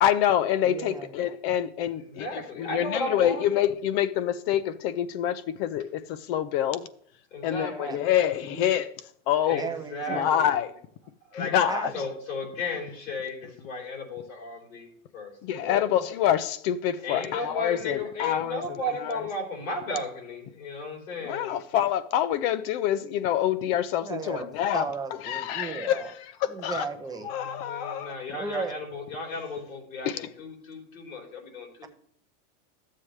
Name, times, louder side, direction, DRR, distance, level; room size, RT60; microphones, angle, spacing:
voice 1, 0.0-6.9 7.4-8.9 9.3-9.6 10.1-10.7 11.3-11.9 15.4-19.2 21.2-24.9 25.2-26.2 26.4-26.9 27.2-28.2 30.0-30.3, left 10 dB, 50° left, 0.6 m, -26 dB
voice 2, 0.6-1.1 7.6-8.0 8.4-8.7 9.6-10.4 11.6-12.0 24.0-24.5 24.7-26.1 26.4-27.3 28.4-28.8, right 5 dB, 10° right, 0.6 m, -35 dB
voice 3, 2.1-3.5 7.3-8.0 9.5-10.5 11.3-11.6 11.9-15.9 17.0-21.6 27.2-31.9, left 2 dB, 90° left, 3.7 m, -35 dB
12.5 x 7.4 x 3.2 m
supercardioid pair, 140°, 40 cm